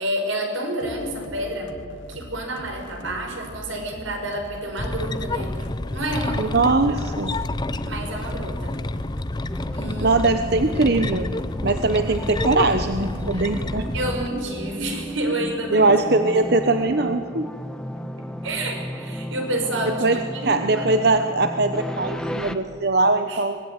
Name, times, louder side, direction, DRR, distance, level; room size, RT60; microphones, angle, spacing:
voice 1, 0.0-1.8 2.1-5.6 5.9-7.3 7.8-8.8 9.7-10.1 10.6-10.8 12.0-12.2 13.3-13.5 13.9-15.9 16.2-16.4 18.4-20.9 23.3-23.4, right 1 dB, 85° right, 3 dB, 5.7 m, -29 dB
sound 1, 0.8-14.9, left 1 dB, 75° left, 1.7 m, -42 dB
sound 2, 4.8-14.3, left 2 dB, 20° left, 0.6 m, -29 dB
voice 2, 6.4-7.3 10.0-11.3 11.6-13.9 15.7-17.5 20.0-20.2 20.4-23.6, right 3 dB, 55° right, 8 dB, 0.9 m, -21 dB
sound 3, 9.5-22.5, equal, 5° left, 1.1 m, -34 dB
24.0 x 19.0 x 9.6 m, 2.1 s
head